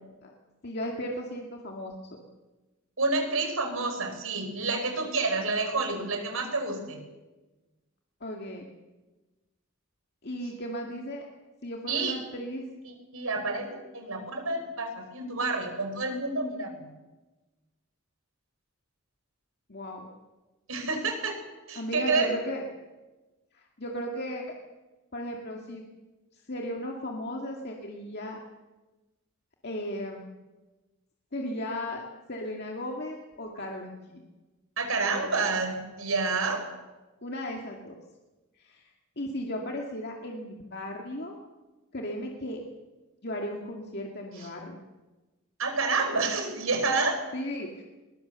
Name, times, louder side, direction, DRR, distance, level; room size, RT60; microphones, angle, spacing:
voice 1, 0.6-2.2 8.2-8.7 10.2-11.3 11.6-12.7 19.7-20.1 21.7-22.6 23.5-24.5 25.1-25.8 26.3-28.4 29.6-30.3 31.3-32.0 32.3-34.2 35.0-35.3 37.2-38.0 38.5-41.4 41.9-42.6 43.2-44.8 47.3-47.8, equal, 50° left, 0 dB, 2.1 m, -36 dB
voice 2, 3.0-7.0 11.9-12.2 13.1-16.9 20.7-21.4 21.7-22.3 34.8-36.6 45.6-47.2, right 3 dB, 80° right, 5 dB, 5.1 m, -29 dB
21.5 x 20.5 x 7.0 m, 1.2 s
head